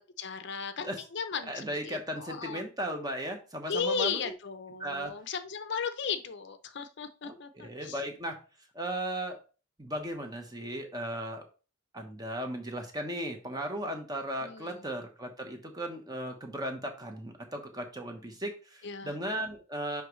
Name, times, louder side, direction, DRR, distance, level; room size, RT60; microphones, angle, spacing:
voice 1, 0.2-2.6 3.7-7.9 14.4-14.7 18.8-19.1, left 6 dB, 60° left, 10 dB, 0.6 m, -35 dB
voice 2, 1.4-4.2 4.8-5.1 7.2-8.4 8.7-9.4 9.8-11.5 11.9-20.0, right 1 dB, 20° right, 4 dB, 1.0 m, -36 dB
10.0 x 3.5 x 3.1 m, 0.35 s
head